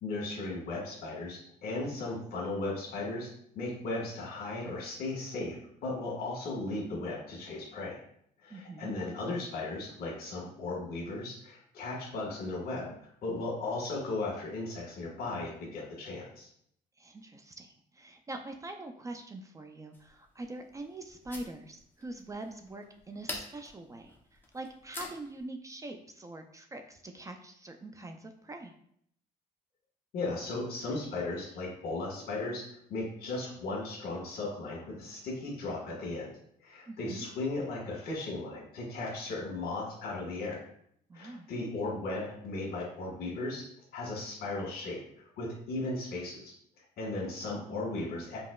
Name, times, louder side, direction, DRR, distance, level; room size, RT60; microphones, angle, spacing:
voice 1, 0.0-5.6 5.8-8.0 8.4-12.9 13.2-16.5 30.1-32.6 32.9-36.3 36.6-40.6 41.1-43.7 43.9-45.0 45.4-46.5 47.0-48.4, left 2 dB, 70° left, -3 dB, 1.5 m, -36 dB
voice 2, 8.5-8.9 17.0-24.2 24.5-28.7 36.9-37.3 41.1-41.5, right 2 dB, 20° right, 5 dB, 0.3 m, -44 dB
sound 1, 19.9-25.4, left 2 dB, 10° left, 0.7 m, -47 dB
5.1 x 2.8 x 2.3 m, 0.68 s
cardioid pair, 115°, 16 cm